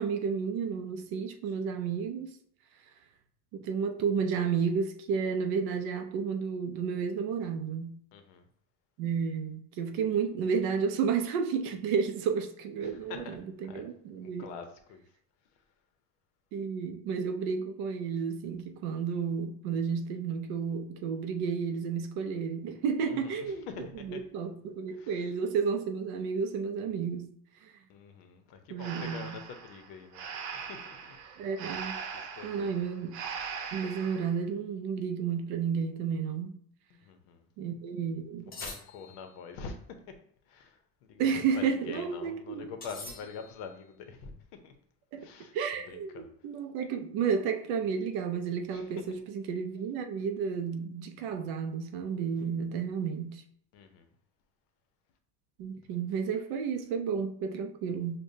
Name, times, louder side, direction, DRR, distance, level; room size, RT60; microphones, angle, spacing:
voice 1, 0.0-2.4 3.5-8.0 9.0-14.5 16.5-27.3 27.6-27.7 28.7-29.4 31.4-32.0 32.4-33.2 33.7-36.6 37.6-38.5 41.2-42.7 45.1-45.3 45.5-53.4 55.6-58.2, right 6 dB, 50° right, 0.5 m, -32 dB
voice 2, 8.1-8.4 12.8-13.4 13.6-13.8 14.2-15.0 23.0-24.2 24.9-25.2 27.9-30.2 30.5-31.2 32.1-32.8 36.9-37.4 38.5-39.8 40.5-44.3 44.6-44.7 45.2-45.5 45.9-46.3 48.7-48.8 53.7-54.1, left 5 dB, 60° left, 0.7 m, -45 dB
Breathing, 28.8-34.3, right 6 dB, 75° right, 0.9 m, -40 dB
sound 1, 38.5-39.4 42.8-43.7, left 3 dB, 20° left, 0.5 m, -44 dB
6.5 x 2.2 x 2.7 m
cardioid pair, 175°, 48 cm